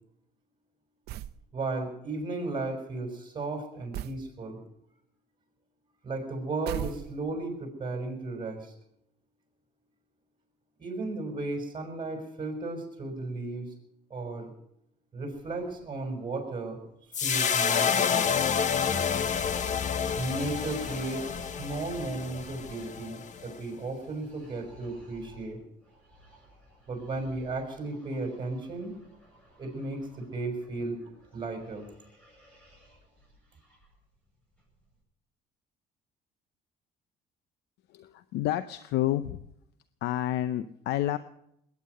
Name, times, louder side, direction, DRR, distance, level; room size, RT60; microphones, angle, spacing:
sound 1, 1.1-1.4 3.9-4.3 6.7-7.4, right 13 dB, 75° right, 0.7 m, -37 dB
voice 1, 1.5-4.6 6.0-8.7 10.8-13.7 14.1-14.5 15.1-16.8 17.2-18.3 20.1-25.6 26.9-29.0 29.6-31.0 31.3-31.9, right 2 dB, 30° right, 3 dB, 5.7 m, -35 dB
sound 2, 15.3-35.0, equal, 5° left, 7.5 m, -55 dB
sound 3, 17.1-23.5, left 7 dB, 45° left, 1.1 m, -29 dB
voice 2, 37.9-39.4 40.0-41.2, left 13 dB, 85° left, 12 dB, 0.7 m, -29 dB
20.5 x 9.7 x 6.6 m, 0.76 s
cardioid pair, 110°, 17 cm